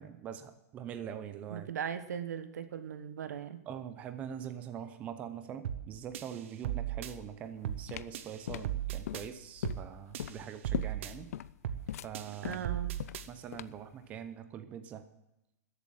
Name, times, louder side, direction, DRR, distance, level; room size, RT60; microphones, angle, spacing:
voice 1, 0.0-1.7 3.7-11.3 12.0-12.7 13.3-15.1, right 9 dB, 15° right, 9 dB, 0.6 m, -43 dB
voice 2, 1.5-3.6 12.4-12.9, right 8 dB, 85° right, 11 dB, 1.3 m, -38 dB
sound 1, 5.6-5.9 6.1-7.1 7.6-7.9 8.1-9.3 9.6-9.9 10.1-11.1 11.6-11.9 12.1-13.3, right 11 dB, 50° right, 0.9 m, -37 dB
sound 2, 7.4-13.9, left 11 dB, 65° left, 0.5 m, -40 dB
13.5 x 8.3 x 7.4 m, 0.91 s
supercardioid pair, 175°, 9 cm